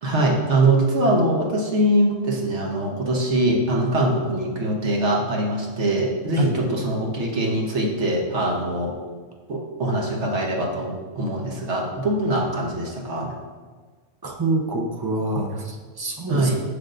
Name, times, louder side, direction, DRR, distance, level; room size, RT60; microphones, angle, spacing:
voice 1, 0.0-8.9 9.5-13.3 16.3-16.6, right 1 dB, 85° right, -1 dB, 1.3 m, -22 dB
voice 2, 14.2-16.5, right 2 dB, 25° right, 1 dB, 0.5 m, -26 dB
6.5 x 6.4 x 2.5 m, 1.4 s
omnidirectional pair, 1.2 m